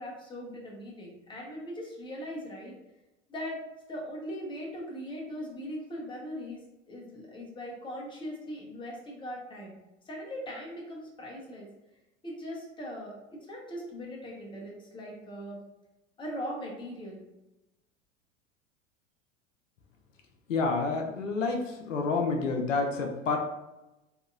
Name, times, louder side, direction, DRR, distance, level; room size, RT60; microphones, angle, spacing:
voice 1, 0.0-2.7 3.3-3.6 3.9-9.7 10.1-11.7 12.2-15.6 16.2-17.2, equal, 15° left, -2 dB, 0.9 m, -40 dB
voice 2, 20.5-23.4, left 4 dB, 80° left, 3 dB, 0.6 m, -29 dB
3.7 x 2.8 x 2.3 m, 0.99 s
figure-of-eight pair, 85°, 37 cm